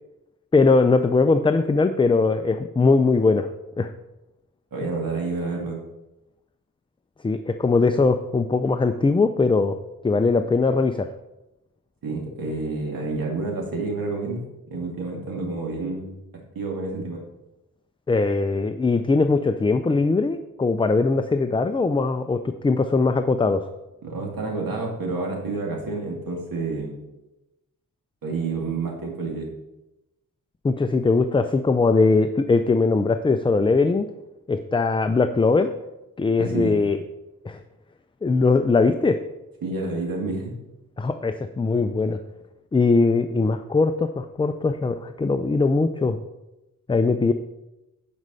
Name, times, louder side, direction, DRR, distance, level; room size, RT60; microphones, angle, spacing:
voice 1, 0.5-3.5 3.8-3.9 7.2-9.8 10.0-11.1 18.1-23.7 30.6-34.1 34.5-35.7 36.2-37.0 37.4-37.6 38.2-39.2 41.0-42.2 42.7-46.2 46.9-47.3, left 3 dB, 15° left, 8 dB, 0.3 m, -20 dB
voice 2, 4.7-5.8 12.0-14.4 14.7-16.2 16.5-17.2 24.0-27.0 28.2-29.5 36.4-36.8 39.6-40.5, right 3 dB, 85° right, 0 dB, 2.3 m, -29 dB
9.6 x 5.1 x 5.5 m, 0.97 s
wide cardioid pair, 120°, 34 cm